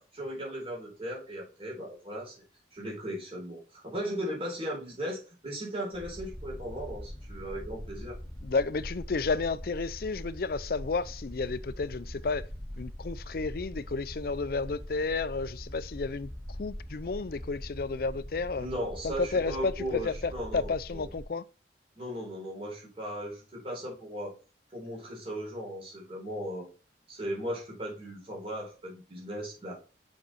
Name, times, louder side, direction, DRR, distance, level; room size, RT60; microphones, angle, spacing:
voice 1, 0.0-2.4 2.7-8.2 18.6-21.1 22.0-24.3 24.7-26.7 27.1-29.8, equal, 30° right, 4.0 m, -37 dB
sound 1, 5.9-21.2, equal, 5° right, 2.0 m, -42 dB
voice 2, 8.4-12.5 12.8-16.3 16.6-18.7 19.0-21.4, left 4 dB, 55° left, 0.5 m, -32 dB
6.7 x 5.4 x 4.4 m
head